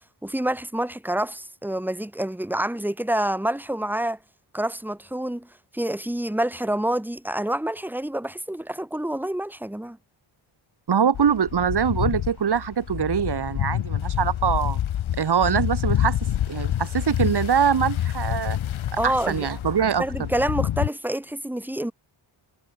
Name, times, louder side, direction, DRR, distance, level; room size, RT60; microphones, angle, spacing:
voice 1, 0.2-4.2 4.5-5.5 5.7-10.0 19.0-19.5 20.0-21.9, right 1 dB, 5° right, 2.7 m, -27 dB
voice 2, 10.9-14.8 15.2-16.2 16.5-18.6 19.0-20.0, right 7 dB, 55° right, 2.0 m, -23 dB
sound 1, 11.1-20.9, left 11 dB, 70° left, 1.0 m, -27 dB
wide cardioid pair, 115°, 49 cm